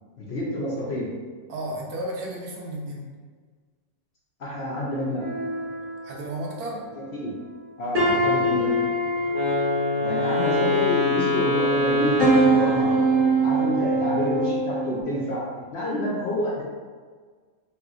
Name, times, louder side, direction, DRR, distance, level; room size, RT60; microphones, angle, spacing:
voice 1, 0.2-1.1 4.4-5.2 7.0-7.3 7.8-8.7 10.0-12.9 13.4-15.5 15.7-16.6, left 1 dB, 60° left, -6 dB, 0.7 m, -28 dB
voice 2, 1.5-3.1 6.0-6.9, right 1 dB, 80° right, -2 dB, 1.2 m, -33 dB
sound 1, 5.2-7.0 7.5-7.6 7.9-11.2 11.8-15.0, right 2 dB, 45° right, 1.8 m, -24 dB
Wind instrument woodwind instrument, 9.3-13.5, left 2 dB, 35° left, 0.3 m, -24 dB
3.3 x 2.9 x 2.4 m, 1.5 s
omnidirectional pair, 1.6 m